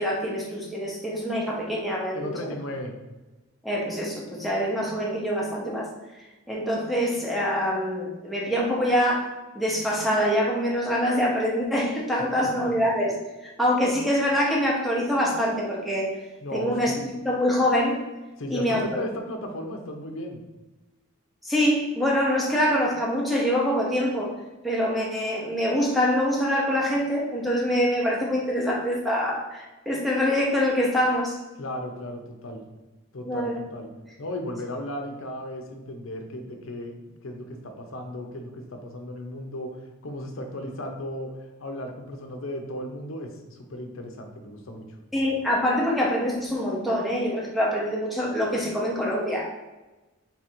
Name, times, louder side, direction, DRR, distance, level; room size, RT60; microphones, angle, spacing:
voice 1, 0.0-2.1 3.6-5.9 6.5-13.2 13.6-16.1 16.5-16.9 17.2-18.0 18.5-18.9 21.4-24.3 24.6-31.4 33.2-33.6 45.1-49.5, equal, ahead, -4 dB, 0.7 m, -25 dB
voice 2, 2.1-2.9 12.4-12.9 16.4-17.0 18.4-20.4 31.6-32.6 33.1-33.9 34.2-36.9 37.2-39.8 40.0-44.8, left 1 dB, 65° left, 3 dB, 0.7 m, -35 dB
4.0 x 2.6 x 4.3 m, 1.1 s
head